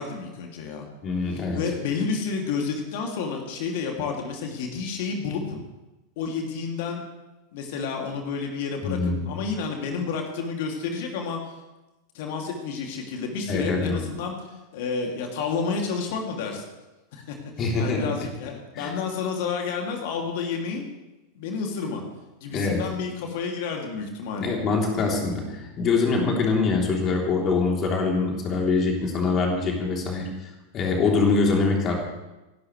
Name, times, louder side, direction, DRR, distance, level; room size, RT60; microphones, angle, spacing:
voice 1, 0.0-0.9 1.3-5.6 6.2-7.1 7.5-9.0 9.3-11.4 12.1-14.4 14.7-16.6 17.1-17.4 17.8-20.9 21.3-22.0 22.4-24.5, left 5 dB, 50° left, 2 dB, 2.8 m, -30 dB
voice 2, 1.0-1.6 8.8-9.3 13.5-14.1 17.6-18.3 18.7-18.9 22.5-22.9 24.4-31.9, left 4 dB, 30° left, 0 dB, 3.5 m, -24 dB
28.0 x 12.0 x 3.4 m, 1.0 s
figure-of-eight pair, 90°, 0 cm